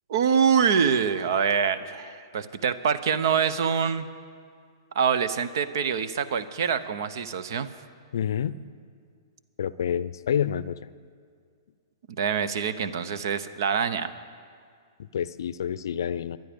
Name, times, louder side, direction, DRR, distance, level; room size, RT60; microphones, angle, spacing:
voice 1, 0.1-4.1 4.9-7.7 12.2-14.1, right 7 dB, 60° right, 14 dB, 0.8 m, -25 dB
voice 2, 8.1-8.5 9.6-10.9 15.0-16.4, left 9 dB, 65° left, 17 dB, 0.5 m, -28 dB
24.0 x 9.3 x 5.2 m, 2.1 s
figure-of-eight pair, 115°, 2 cm